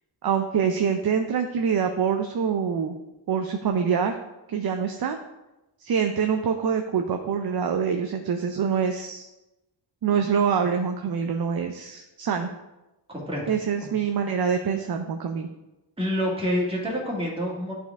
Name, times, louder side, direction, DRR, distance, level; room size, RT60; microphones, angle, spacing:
voice 1, 0.2-3.0 3.3-4.1 4.5-5.2 5.8-9.3 10.0-12.5 13.5-15.5, right 6 dB, 50° right, 5 dB, 0.6 m, -25 dB
voice 2, 13.1-13.5 16.0-17.7, equal, 10° right, -4 dB, 1.8 m, -27 dB
9.3 x 4.4 x 3.5 m, 0.98 s
wide cardioid pair, 90°, 47 cm